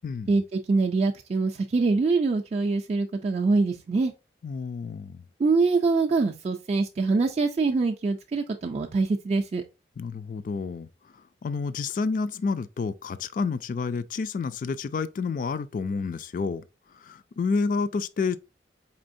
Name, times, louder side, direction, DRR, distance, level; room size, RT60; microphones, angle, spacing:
voice 1, 0.0-0.4 4.4-5.2 10.0-10.9 11.4-16.6 17.0-18.4, left 4 dB, 50° left, 0.3 m, -29 dB
voice 2, 0.7-4.1 5.4-9.6, right 3 dB, 40° right, 0.3 m, -24 dB
4.4 x 3.4 x 2.5 m
head